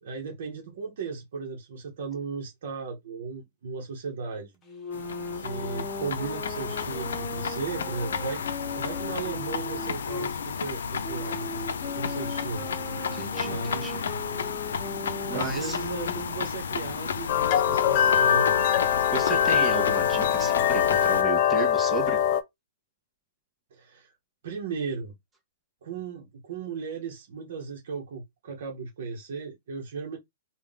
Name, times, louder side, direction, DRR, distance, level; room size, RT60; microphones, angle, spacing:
voice 1, 0.0-4.5 5.3-8.4 8.7-11.4 12.0-12.7 13.4-13.9 15.3-18.6 23.7-24.1 24.4-25.2 25.8-30.2, right 5 dB, 60° right, 1.1 m, -36 dB
sound 1, 4.6-10.3 11.0-16.4, left 2 dB, 15° left, 1.1 m, -38 dB
sound 2, 4.9-21.2, left 6 dB, 80° left, 0.6 m, -33 dB
voice 2, 13.0-14.0 15.2-15.8 19.1-22.2, right 4 dB, 10° right, 1.2 m, -34 dB
sound 3, 17.3-22.4, left 9 dB, 35° left, 0.5 m, -23 dB
3.7 x 2.4 x 3.6 m
hypercardioid pair, 160°, 0 cm